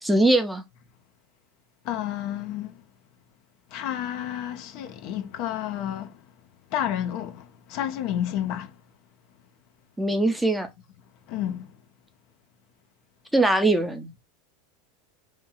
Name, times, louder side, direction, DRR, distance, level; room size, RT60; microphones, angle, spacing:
voice 1, 0.0-0.6 10.0-10.7 13.3-14.1, right 2 dB, 5° right, 0.8 m, -21 dB
voice 2, 1.8-2.7 3.7-6.1 6.7-8.7 11.3-11.7, left 11 dB, 55° left, 0.7 m, -30 dB
3.0 x 2.6 x 3.9 m
hypercardioid pair, 90°, 0 cm